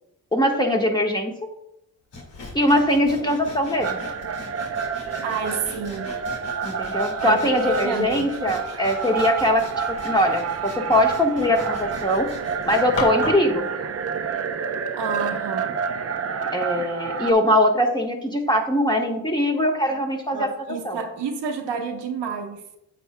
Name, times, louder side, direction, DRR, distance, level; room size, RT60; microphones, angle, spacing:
voice 1, 0.3-1.3 2.5-4.0 6.6-12.3 12.6-13.6 16.5-21.0, left 1 dB, 10° left, 1.3 m, -21 dB
Sawing, 2.1-13.5, left 3 dB, 80° left, 2.2 m, -37 dB
sound 1, 3.8-17.3, right 6 dB, 35° right, 0.7 m, -29 dB
voice 2, 5.2-6.2 7.2-8.3 14.9-15.8 20.3-22.7, right 5 dB, 85° right, 1.1 m, -30 dB
8.8 x 7.2 x 2.2 m
cardioid pair, 70°, 41 cm